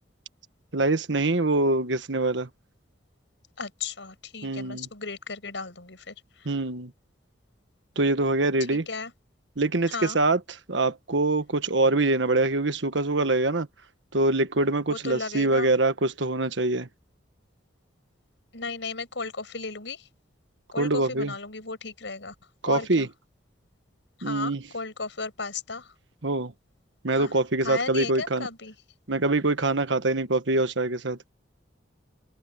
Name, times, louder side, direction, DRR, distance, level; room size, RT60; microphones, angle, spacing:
voice 1, 0.7-2.5 4.4-4.9 6.4-6.9 8.0-8.9 9.6-13.7 14.1-16.9 20.8-21.3 22.6-23.1 24.2-24.7 26.2-26.5 27.0-28.5 29.1-31.3, right 2 dB, 70° right, 1.4 m, -24 dB
voice 2, 3.6-6.1 8.7-9.1 9.9-10.2 14.9-15.7 18.5-20.0 20.7-22.3 22.7-23.1 24.2-25.9 27.1-27.3 27.6-28.7, left 4 dB, 75° left, 5.8 m, -35 dB
open air
head